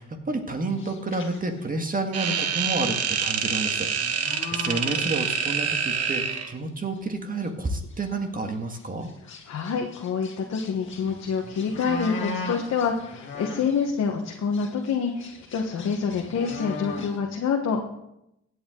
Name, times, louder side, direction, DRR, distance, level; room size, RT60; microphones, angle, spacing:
voice 1, 0.0-9.1, right 2 dB, 30° right, 5 dB, 1.9 m, -30 dB
sound 1, 0.7-2.0 2.5-2.7 3.0-5.6 5.9-6.4 6.9-7.0 7.4-7.5 7.8-8.1 8.7-13.9 14.3-17.2, left 3 dB, 40° left, 2.2 m, -39 dB
sound 2, 2.1-6.5, right 6 dB, 55° right, 1.1 m, -26 dB
voice 2, 9.5-17.8, left 6 dB, 60° left, 1 dB, 1.3 m, -27 dB
16.0 x 8.6 x 3.8 m, 0.83 s
cardioid pair, 90°, 30 cm